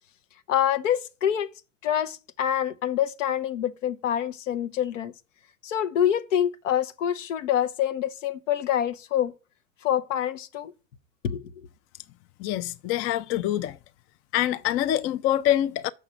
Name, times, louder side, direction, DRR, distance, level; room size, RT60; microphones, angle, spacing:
voice 1, 0.5-1.5 1.8-5.1 5.6-9.3 9.8-10.7 11.2-11.4, left 10 dB, 70° left, 0.7 m, -26 dB
voice 2, 12.4-13.8 14.3-15.9, left 12 dB, 35° left, 0.4 m, -25 dB
6.3 x 4.7 x 6.7 m
figure-of-eight pair, 70°, 39 cm